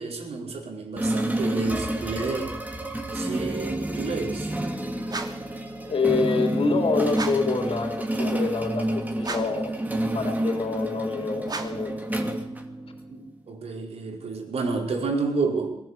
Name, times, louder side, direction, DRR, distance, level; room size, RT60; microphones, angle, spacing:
voice 1, 0.0-2.5 3.1-4.5 13.1-15.7, right 4 dB, 70° right, 1 dB, 5.0 m, -30 dB
sound 1, 1.0-13.2, right 1 dB, 15° right, 2.8 m, -29 dB
sound 2, 5.1-5.5 7.1-7.6 9.2-9.7 11.4-11.9, right 3 dB, 40° right, 2.8 m, -34 dB
voice 2, 5.9-9.7 10.1-11.9, left 4 dB, 60° left, 4 dB, 3.8 m, -26 dB
21.0 x 15.5 x 8.4 m, 0.80 s
cardioid pair, 75°, 11 cm